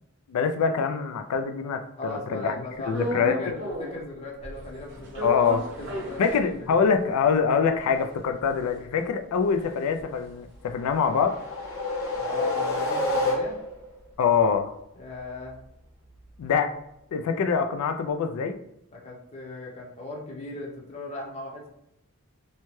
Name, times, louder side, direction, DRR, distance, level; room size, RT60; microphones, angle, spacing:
voice 1, 0.3-2.5 2.9-3.4 5.2-5.7 6.2-11.4 14.2-14.7 16.4-16.7 17.1-18.6, left 6 dB, 90° left, 8 dB, 0.3 m, -24 dB
voice 2, 2.0-5.3 5.8-6.8 12.2-13.6 15.0-15.6 18.9-21.7, left 2 dB, 30° left, -2 dB, 0.7 m, -38 dB
sound 1, 2.9-4.1 4.4-7.0 7.4-7.5 7.7-12.2 12.5-16.6, right 1 dB, 50° right, 0.7 m, -37 dB
sound 2, 10.8-13.9, left 2 dB, 65° left, 0.8 m, -28 dB
2.8 x 2.2 x 3.0 m, 0.81 s
head